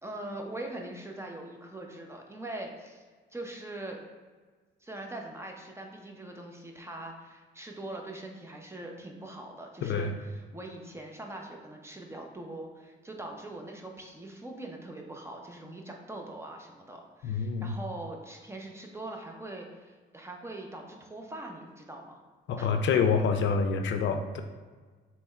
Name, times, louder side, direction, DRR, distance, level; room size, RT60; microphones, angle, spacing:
voice 1, 0.0-3.0 3.3-4.0 4.8-22.2 22.6-22.7, right 1 dB, 15° right, 1 dB, 0.7 m, -42 dB
voice 2, 17.2-17.7 22.5-24.4, left 5 dB, 70° left, 6 dB, 0.5 m, -27 dB
3.5 x 3.1 x 4.3 m, 1.4 s
cardioid pair, 90°, 20 cm